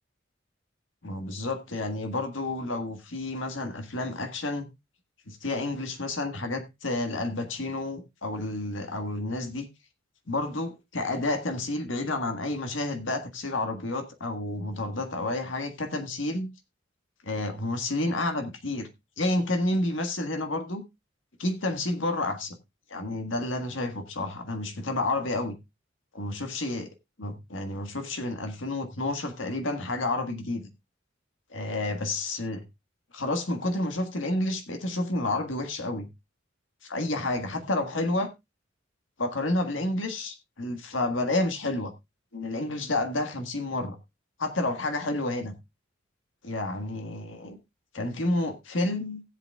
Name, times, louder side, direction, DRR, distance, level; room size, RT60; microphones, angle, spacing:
voice 1, 1.0-4.7 5.3-9.7 10.3-16.5 17.2-18.9 19.2-20.8 21.4-22.6 22.9-25.6 26.1-26.9 27.2-30.6 31.5-32.6 33.1-36.1 36.8-38.3 39.2-41.9 42.3-44.0 44.4-45.5 46.4-47.6 47.9-49.2, left 2 dB, 80° left, 1.6 m, -30 dB
18.0 x 7.9 x 2.4 m
head